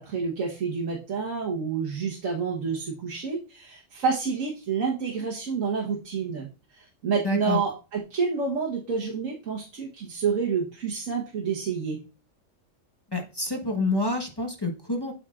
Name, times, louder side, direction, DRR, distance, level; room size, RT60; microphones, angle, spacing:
voice 1, 0.0-6.5 6.7-12.0, right 5 dB, 80° right, -1 dB, 1.6 m, -29 dB
voice 2, 7.2-7.6 13.1-15.1, left 2 dB, 20° left, 1 dB, 1.0 m, -28 dB
12.5 x 4.3 x 2.4 m, 0.33 s
omnidirectional pair, 1.3 m